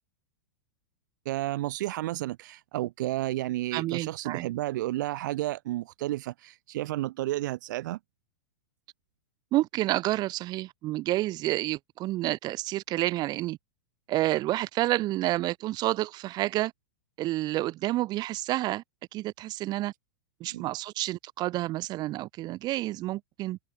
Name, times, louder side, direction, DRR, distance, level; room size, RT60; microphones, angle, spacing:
voice 1, 1.2-8.0 20.5-20.6, right 16 dB, 65° right, 1.2 m, -32 dB
voice 2, 3.7-4.5 9.5-13.6 14.1-16.7 17.2-18.8 19.1-19.9 20.4-23.6, right 16 dB, 40° right, 2.7 m, -29 dB
hypercardioid pair, 110°, 11 cm